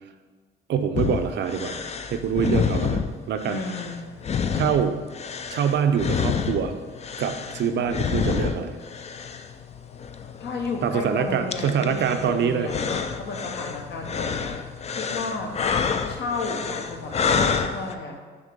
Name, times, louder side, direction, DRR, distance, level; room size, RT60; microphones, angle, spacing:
voice 1, 0.7-3.6 4.5-5.0 5.5-6.8 7.2-8.8 10.8-12.7, right 7 dB, 65° right, 8 dB, 0.5 m, -25 dB
sound 1, 1.0-17.9, left 6 dB, 35° left, 0.4 m, -29 dB
voice 2, 3.4-4.0 10.4-14.6 14.9-15.5 16.1-18.2, left 3 dB, 60° left, 3 dB, 0.9 m, -32 dB
6.1 x 3.1 x 5.2 m, 1.5 s
cardioid pair, 90°, 20 cm